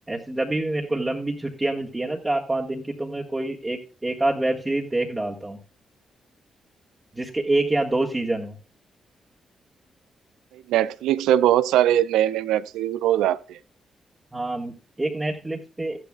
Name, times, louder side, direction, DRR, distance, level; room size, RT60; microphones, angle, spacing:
voice 1, 0.1-5.6 7.1-8.6 14.3-16.0, right 2 dB, 20° right, 1.9 m, -26 dB
voice 2, 10.7-13.6, right 12 dB, 75° right, 0.4 m, -21 dB
14.0 x 11.0 x 2.4 m
hypercardioid pair, 40°, 0 cm